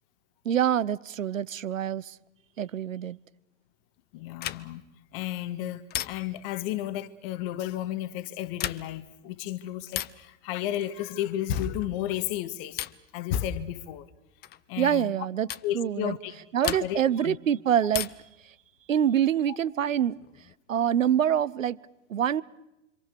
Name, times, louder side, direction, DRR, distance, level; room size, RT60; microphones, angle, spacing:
voice 1, 0.4-2.2 2.6-3.2 14.8-15.5 15.7-16.2 16.5-18.1 18.4-18.5 18.9-20.2 20.7-21.8 22.1-22.4, right 9 dB, 85° right, 1.0 m, -25 dB
voice 2, 4.1-4.8 5.1-12.9 13.1-14.1 14.7-15.1 15.6-16.3 16.6-17.4 19.5-19.6, left 12 dB, 45° left, 1.6 m, -33 dB
sound 1, 4.4-4.9 5.9-6.5 8.5-9.1 9.9-10.3 11.5-11.9 12.8-13.1 14.4-14.6 15.5-15.7 16.6-17.2 17.9-18.4 19.9-20.5, left 13 dB, 25° left, 0.8 m, -36 dB
26.5 x 26.0 x 6.9 m
hypercardioid pair, 110°, 38 cm